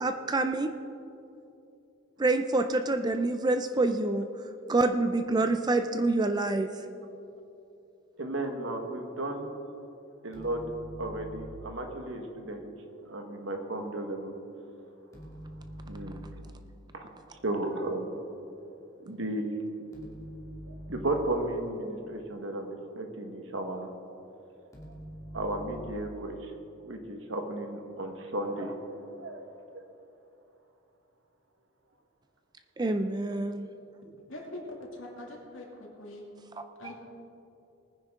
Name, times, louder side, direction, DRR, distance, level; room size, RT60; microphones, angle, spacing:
voice 1, 0.0-0.7 2.2-4.3 4.7-6.7 32.8-33.7 36.8-36.9, right 2 dB, 20° right, 8 dB, 0.4 m, -27 dB
voice 2, 8.2-9.5 10.2-10.6 11.0-12.7 13.0-14.3 15.9-16.2 16.9-17.1 17.4-18.1 19.0-19.5 20.7-23.9 24.9-25.0 25.3-26.5 26.8-28.7 29.1-29.4 29.7-29.8, right 1 dB, 65° right, 4 dB, 1.4 m, -34 dB
sound 1, 10.3-11.8 15.1-16.6 19.9-21.4 24.7-26.2, equal, 15° left, 2.3 m, -44 dB
voice 3, 34.3-36.2 36.8-37.0, left 1 dB, 70° left, -2 dB, 2.5 m, -43 dB
20.0 x 9.8 x 3.7 m, 2.7 s
head